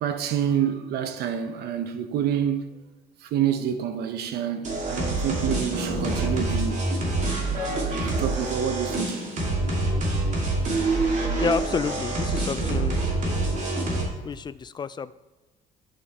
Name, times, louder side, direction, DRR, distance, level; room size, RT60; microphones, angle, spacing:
voice 1, 0.0-2.7 3.3-6.9 7.6-9.2, right 9 dB, 70° right, 0.9 m, -28 dB
sound 1, 4.6-14.0, right 2 dB, 45° right, 2.6 m, -26 dB
voice 2, 11.4-13.0 14.2-15.1, left 6 dB, 25° left, 0.3 m, -29 dB
10.5 x 5.2 x 4.2 m
cardioid pair, 110°, 17 cm